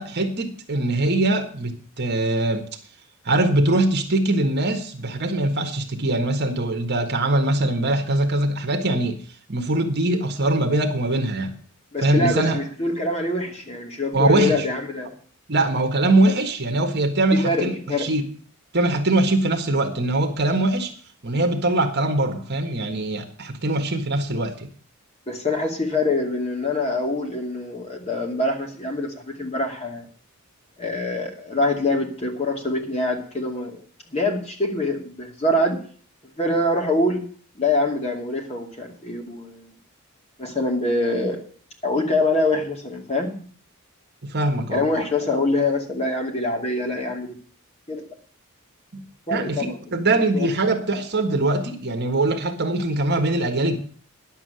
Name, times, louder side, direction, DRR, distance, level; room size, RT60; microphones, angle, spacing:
voice 1, 0.0-2.7 3.2-9.2 9.5-11.6 12.0-12.6 14.1-14.7 15.5-18.2 18.7-20.9 21.2-24.7 44.2-44.8 48.9-53.8, right 2 dB, 50° right, 1.5 m, -22 dB
voice 2, 11.9-15.1 17.3-18.1 25.3-30.1 30.8-33.8 34.1-35.8 36.4-37.2 37.6-39.7 40.4-41.5 41.8-43.5 44.7-47.4 47.9-48.0 49.3-50.0 50.3-50.5, left 2 dB, 30° left, 2.5 m, -24 dB
10.5 x 7.6 x 7.6 m
head